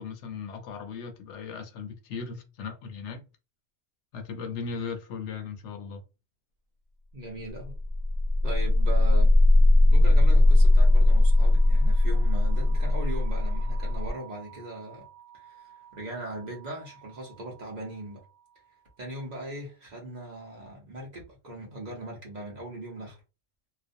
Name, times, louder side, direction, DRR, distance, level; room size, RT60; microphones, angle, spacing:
voice 1, 0.0-3.2 4.1-6.0, left 5 dB, 75° left, 0.8 m, -37 dB
voice 2, 7.1-7.7 8.4-9.3 9.9-15.1 15.3-18.2 19.0-23.2, right 1 dB, 40° right, 0.8 m, -39 dB
sound 1, 7.5-17.5, left 1 dB, 90° right, 1.0 m, -21 dB
2.4 x 2.1 x 2.5 m
omnidirectional pair, 1.3 m